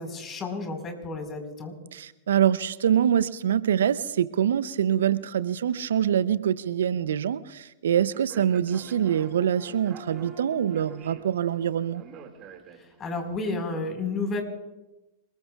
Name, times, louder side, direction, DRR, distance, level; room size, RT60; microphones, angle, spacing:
voice 1, 0.0-1.7 13.0-14.4, left 3 dB, 25° left, 4 dB, 4.6 m, -31 dB
voice 2, 1.9-12.0, right 9 dB, 70° right, 16 dB, 0.6 m, -25 dB
Speech, 8.1-13.2, right 8 dB, 35° right, 2.2 m, -48 dB
sound 1, 8.7-13.0, right 3 dB, 15° right, 8.0 m, -48 dB
27.5 x 21.0 x 2.4 m, 1.0 s
hypercardioid pair, 100°, 0 cm